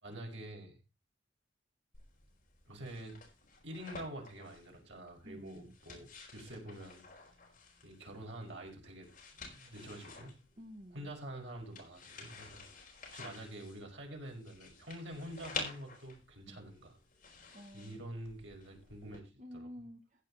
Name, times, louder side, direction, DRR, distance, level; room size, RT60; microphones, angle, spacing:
voice 1, 0.0-0.8 2.7-3.2 3.6-7.0 7.8-9.1 9.4-10.3 10.9-17.0 17.7-19.7, right 1 dB, 80° right, 1 dB, 5.4 m, -47 dB
sound 1, 1.9-19.2, left 4 dB, 45° left, 4.9 m, -50 dB
voice 2, 5.2-5.7 10.6-11.1 16.5-16.6 17.5-18.0 19.4-20.2, equal, 40° right, 3 dB, 1.5 m, -50 dB
15.0 x 8.8 x 4.2 m, 0.29 s
head